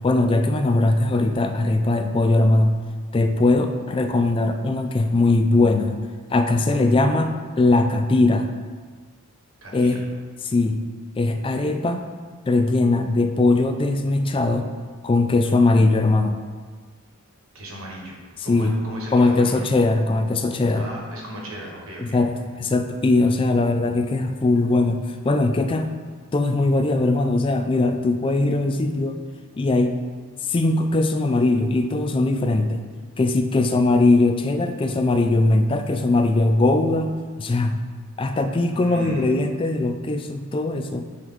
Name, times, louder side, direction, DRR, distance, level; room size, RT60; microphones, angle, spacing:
voice 1, 0.0-2.8 3.1-6.0 6.3-8.5 9.7-10.0 10.5-10.8 11.2-12.0 12.5-14.7 15.0-16.4 18.5-18.8 19.1-20.9 22.0-22.3 22.6-25.9 26.3-29.2 29.6-30.0 30.5-32.8 33.2-37.8 38.2-41.0, left 2 dB, 25° left, 6 dB, 0.3 m, -20 dB
voice 2, 9.6-10.0 15.4-15.9 17.5-19.7 20.7-22.2 38.7-39.3, equal, 80° right, -2 dB, 1.4 m, -36 dB
8.4 x 3.1 x 3.7 m, 1.5 s
head